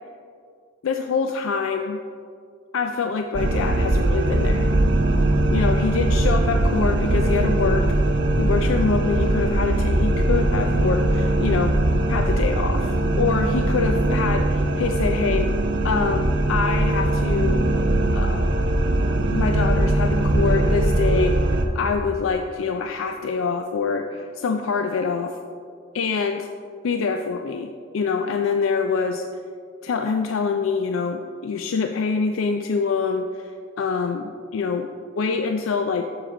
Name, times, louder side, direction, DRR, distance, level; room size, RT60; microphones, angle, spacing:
voice 1, 0.8-2.0 2.7-4.7 5.5-7.9 8.4-11.8 12.1-15.5 15.8-17.6 18.1-18.6 19.3-25.4 25.9-26.5 26.8-29.2 29.8-34.9 35.2-36.1, left 5 dB, 85° left, 5 dB, 0.4 m, -25 dB
sound 1, 3.3-21.7, right 1 dB, 60° right, 0.6 m, -21 dB
7.6 x 6.6 x 3.7 m, 2.2 s
head